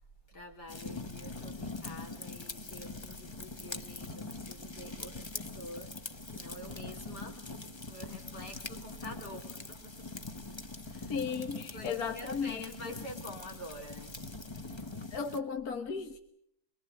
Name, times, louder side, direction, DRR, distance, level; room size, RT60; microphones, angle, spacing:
voice 1, 0.3-5.9 6.3-9.9 10.9-11.2 11.7-14.1, equal, 90° left, 2 dB, 4.5 m, -47 dB
sound 1, 0.7-15.4, left 3 dB, 20° left, 0.9 m, -43 dB
voice 2, 11.1-12.9 15.1-16.2, left 6 dB, 65° left, 6 dB, 1.7 m, -35 dB
24.0 x 23.5 x 7.6 m, 0.70 s
omnidirectional pair, 1.7 m